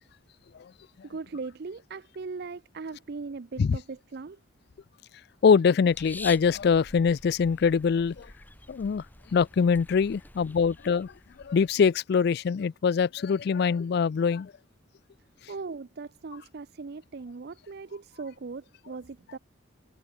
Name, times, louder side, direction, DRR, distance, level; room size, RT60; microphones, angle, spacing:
voice 1, 1.1-4.4 15.5-19.4, right 4 dB, 55° right, 0.5 m, -39 dB
voice 2, 5.4-8.3 8.7-9.0 9.3-11.1 11.4-14.5, left 6 dB, 55° left, 0.3 m, -23 dB
sound 1, 5.9-11.8, left 2 dB, 10° left, 2.0 m, -46 dB
head